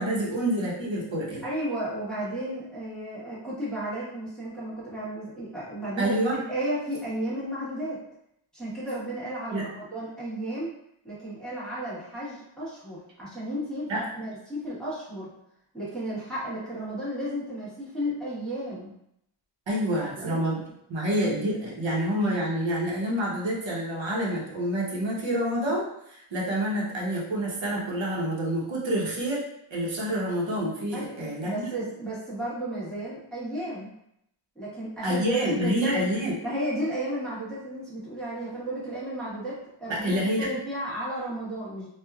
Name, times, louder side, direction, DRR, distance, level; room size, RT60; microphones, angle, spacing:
voice 1, 0.0-1.4 6.0-6.4 9.5-9.7 13.9-14.0 19.7-20.6 20.9-29.4 29.7-31.7 35.0-36.3 39.9-40.5, equal, 60° right, -4 dB, 1.0 m, -28 dB
voice 2, 1.4-8.0 8.5-10.7 11.0-15.3 15.7-18.9 20.0-20.4 30.9-33.9 34.5-36.1 36.4-41.9, right 1 dB, ahead, -10 dB, 1.3 m, -33 dB
2.9 x 2.4 x 2.3 m, 0.75 s
wide cardioid pair, 95°, 50 cm